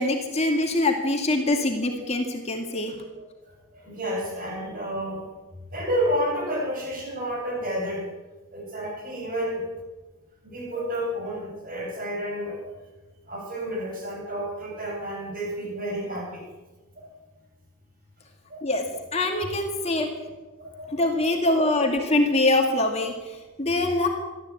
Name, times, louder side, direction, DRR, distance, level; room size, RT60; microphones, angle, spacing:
voice 1, 0.0-2.9 18.6-20.1 20.9-24.1, left 2 dB, 30° left, 2 dB, 2.3 m, -24 dB
voice 2, 3.7-5.3 5.7-8.0 8.5-9.7 10.4-12.7 13.3-16.5 17.0-17.1 18.5-18.7 20.6-21.0, equal, 40° right, -1 dB, 7.6 m, -30 dB
23.5 x 14.0 x 8.5 m, 1.2 s
head